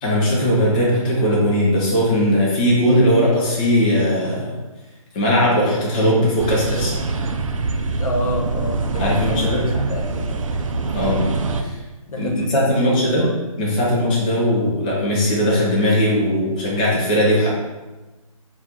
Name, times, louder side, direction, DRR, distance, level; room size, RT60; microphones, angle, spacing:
voice 1, 0.0-4.5 5.1-6.9 9.0-9.6 10.9-11.2 11.6-11.7 12.2-13.2 13.6-17.5, equal, 15° left, -4 dB, 0.3 m, -18 dB
sound 1, 6.4-11.6, right 3 dB, 60° right, 0.4 m, -24 dB
voice 2, 8.0-10.4 12.1-13.3, left 1 dB, 70° left, 0 dB, 1.0 m, -28 dB
4.2 x 2.3 x 3.8 m, 1.1 s
figure-of-eight pair, 145°, 19 cm